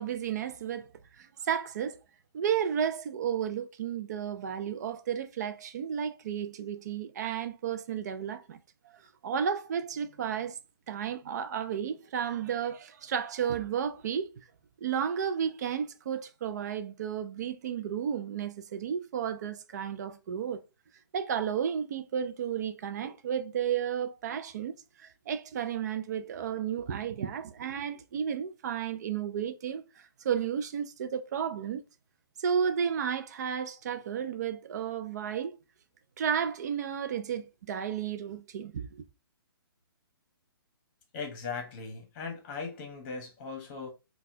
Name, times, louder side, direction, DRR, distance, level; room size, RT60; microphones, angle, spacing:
voice 1, 0.0-2.0 2.3-8.6 8.9-10.6 10.9-14.4 14.8-20.6 21.1-31.8 32.4-35.6 36.2-39.0, right 8 dB, 45° right, 0.4 m, -33 dB
voice 2, 41.1-43.9, left 5 dB, 30° left, 1.0 m, -38 dB
4.0 x 2.3 x 2.6 m
hypercardioid pair, 155°, 13 cm